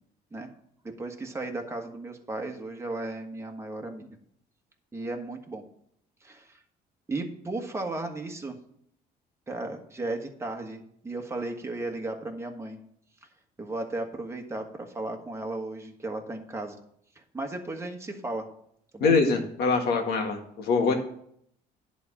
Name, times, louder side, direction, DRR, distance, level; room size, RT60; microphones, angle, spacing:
voice 1, 0.8-4.1 4.9-5.6 6.2-6.6 7.1-8.6 9.5-12.8 13.6-16.8 17.1-18.5 18.9-19.1, right 2 dB, 15° right, 2 dB, 1.4 m, -35 dB
voice 2, 19.0-20.9, left 4 dB, 70° left, 4 dB, 1.8 m, -24 dB
10.5 x 4.2 x 7.2 m, 0.69 s
cardioid pair, 110°, 17 cm